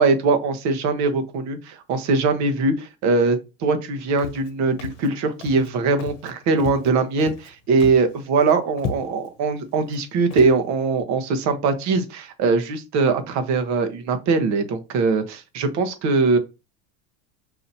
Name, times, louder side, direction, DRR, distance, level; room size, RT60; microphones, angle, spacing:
voice 1, 0.0-16.4, right 4 dB, 50° right, 8 dB, 1.1 m, -21 dB
Walk footsteps, 4.2-4.5 4.8-5.1 5.4-5.7 6.0-6.3 6.6-7.5 7.8-8.1 8.4-8.5 8.8-9.3 9.8-10.0 10.3-10.6, left 6 dB, 65° left, 1.0 m, -33 dB
6.0 x 2.8 x 2.7 m, 0.28 s
supercardioid pair, 120°, 37 cm